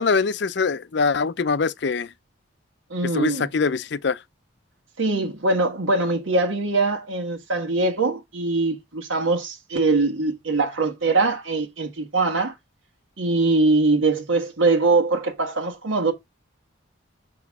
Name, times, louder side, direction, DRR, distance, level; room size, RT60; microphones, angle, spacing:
voice 1, 0.0-2.1 3.1-4.2, left 4 dB, 55° left, 0.5 m, -23 dB
voice 2, 2.9-3.5 5.0-12.5 13.2-16.1, right 3 dB, 75° right, 1.6 m, -22 dB
6.9 x 6.0 x 3.6 m
head